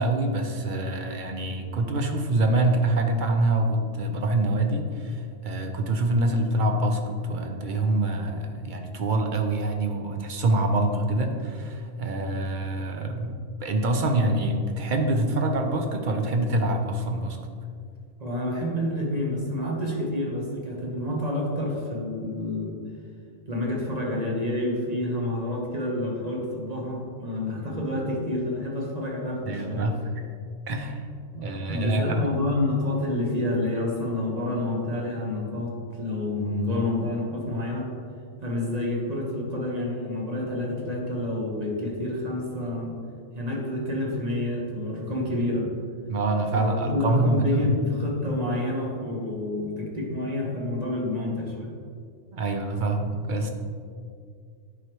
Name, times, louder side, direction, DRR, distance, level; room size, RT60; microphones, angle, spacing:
voice 1, 0.0-17.4 29.4-30.0 30.7-31.0 31.4-32.2 46.1-47.7 52.3-53.5, right 2 dB, 50° right, 4 dB, 0.7 m, -25 dB
voice 2, 18.2-22.8 23.5-29.9 31.3-37.9 38.4-42.9 43.3-45.7 46.5-51.7, left 1 dB, 35° right, -2 dB, 1.2 m, -28 dB
9.5 x 4.8 x 3.1 m, 2.3 s
omnidirectional pair, 1.3 m